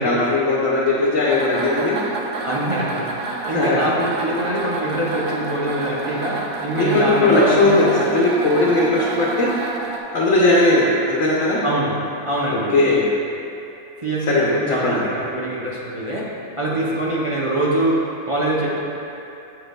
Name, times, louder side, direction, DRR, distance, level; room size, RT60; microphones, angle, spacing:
voice 1, 0.0-2.0 3.5-3.8 6.7-9.5 10.1-11.6 12.5-13.1 14.3-15.0, left 2 dB, 65° left, -5 dB, 1.1 m, -18 dB
sound 1, 1.3-10.0, right 3 dB, 75° right, 1.1 m, -29 dB
voice 2, 2.4-3.1 3.5-8.0 11.6-12.7 14.0-16.3 16.6-18.8, right 1 dB, 40° right, -6 dB, 0.5 m, -24 dB
7.8 x 6.6 x 2.2 m, 2.7 s
omnidirectional pair, 1.4 m